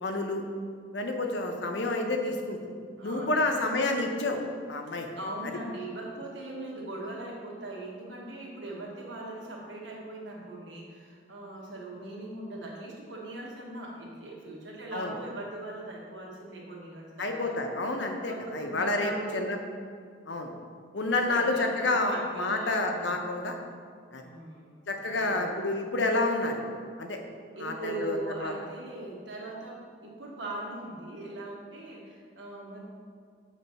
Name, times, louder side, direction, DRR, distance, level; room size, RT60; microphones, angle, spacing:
voice 1, 0.0-0.4 0.9-2.6 3.0-4.4 4.7-5.1 14.9-15.1 17.2-19.6 20.3-20.5 20.9-23.6 24.1-24.2 24.9-26.6 27.0-27.2 27.6-28.5, left 2 dB, 65° left, 3 dB, 0.7 m, -29 dB
voice 2, 3.0-3.5 3.9-4.0 4.8-17.4 18.3-19.6 20.9-23.2 24.2-25.5 27.5-32.8, right 2 dB, 70° right, -2 dB, 1.3 m, -40 dB
7.2 x 3.3 x 5.4 m, 2.1 s
head